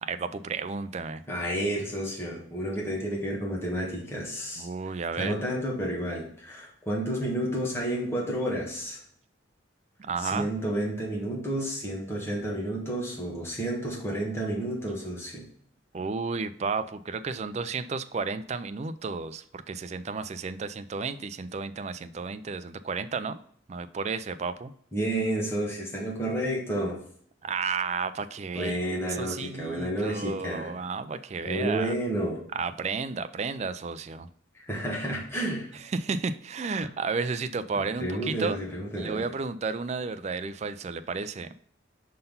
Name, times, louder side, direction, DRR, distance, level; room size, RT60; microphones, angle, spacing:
voice 1, 0.0-1.2 4.6-5.4 10.0-10.5 15.9-23.4 23.7-24.7 27.4-28.8 29.2-31.9 32.5-34.3 35.9-38.6 39.0-41.5, right 4 dB, 35° right, 11 dB, 0.3 m, -32 dB
voice 2, 1.3-4.7 5.2-9.0 10.2-15.4 24.9-27.0 28.5-30.7 31.4-32.4 34.6-35.7 36.8-36.9 37.7-39.2, right 1 dB, 15° left, -4 dB, 1.6 m, -31 dB
5.5 x 3.8 x 5.5 m, 0.62 s
head